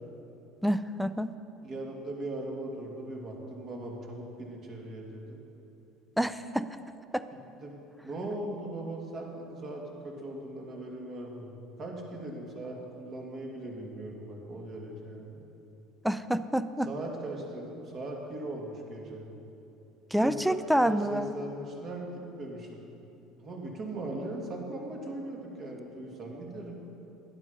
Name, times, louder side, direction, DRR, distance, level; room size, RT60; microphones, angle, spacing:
voice 1, 0.6-1.3 6.2-6.7 7.1-7.2 16.0-16.9 20.1-21.3, equal, ahead, 13 dB, 0.5 m, -27 dB
voice 2, 1.6-5.4 7.6-7.8 8.0-15.4 16.8-19.2 20.2-22.8 23.4-26.8, right 1 dB, 45° right, -1 dB, 2.5 m, -39 dB
11.5 x 10.5 x 5.4 m, 2.9 s
supercardioid pair, 100°, 0 cm